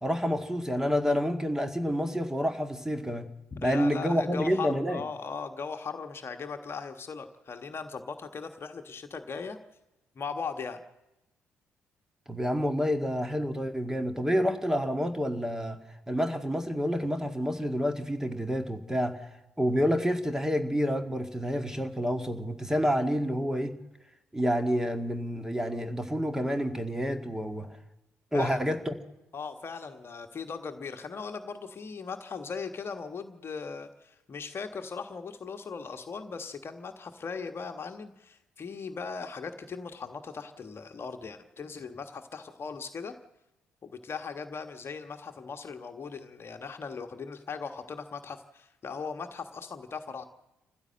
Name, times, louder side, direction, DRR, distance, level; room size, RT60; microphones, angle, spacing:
voice 1, 0.0-3.3 3.6-5.0 12.3-15.8 16.1-19.3 19.6-23.8 24.3-27.8 28.3-29.0, equal, 10° right, 6 dB, 1.9 m, -28 dB
voice 2, 3.5-9.6 10.1-10.8 28.3-28.6 29.3-43.1 43.8-50.3, left 5 dB, 40° left, 6 dB, 1.4 m, -38 dB
27.5 x 15.0 x 7.7 m, 0.98 s
figure-of-eight pair, 40°, 6 cm